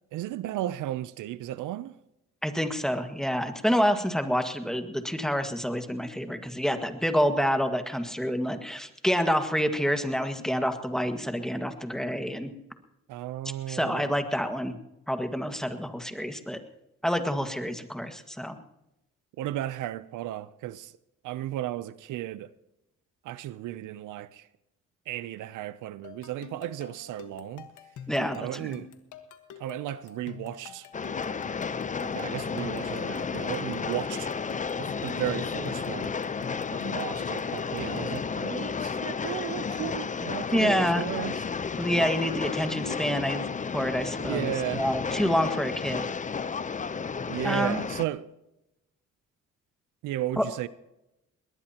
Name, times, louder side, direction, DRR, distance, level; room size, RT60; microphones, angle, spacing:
voice 1, 0.1-2.0 13.1-14.1 19.4-20.9 21.2-22.5 23.2-24.5 25.1-27.7 28.3-28.9 29.6-30.9 32.0-34.3 34.8-36.1 36.7-41.4 44.2-44.8 47.3-48.2 50.0-50.7, right 13 dB, 85° right, 0.6 m, -34 dB
voice 2, 2.4-12.5 13.7-14.7 15.1-16.6 17.0-18.6 28.1-28.4 28.7-28.8 40.5-41.0 41.8-43.4 43.7-46.1 47.4-47.8 50.4-50.5, equal, ahead, 1.7 m, -27 dB
sound 1, 26.0-38.4, left 7 dB, 75° left, 1.5 m, -46 dB
Train, 30.9-48.1, left 5 dB, 25° left, 0.7 m, -32 dB
21.0 x 19.0 x 2.9 m
cardioid pair, 90°, 30 cm